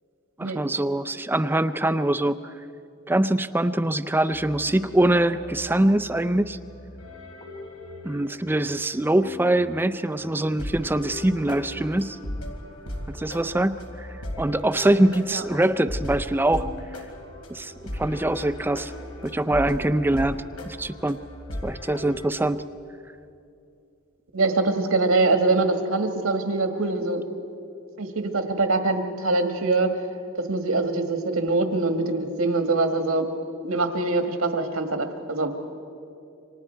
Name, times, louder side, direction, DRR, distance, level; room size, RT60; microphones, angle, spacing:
voice 1, 0.4-2.6 3.1-6.6 8.0-12.2 13.1-14.1 14.4-16.7 17.5-18.9 19.2-21.2 21.6-22.6, right 1 dB, 10° right, 11 dB, 0.4 m, -23 dB
sound 1, 4.3-22.3, left 1 dB, 85° left, 3.6 m, -38 dB
voice 2, 24.3-27.2 28.0-29.9 30.4-33.3 33.6-35.5, right 3 dB, 80° right, 5 dB, 1.8 m, -23 dB
29.0 x 25.0 x 4.6 m, 2.6 s
head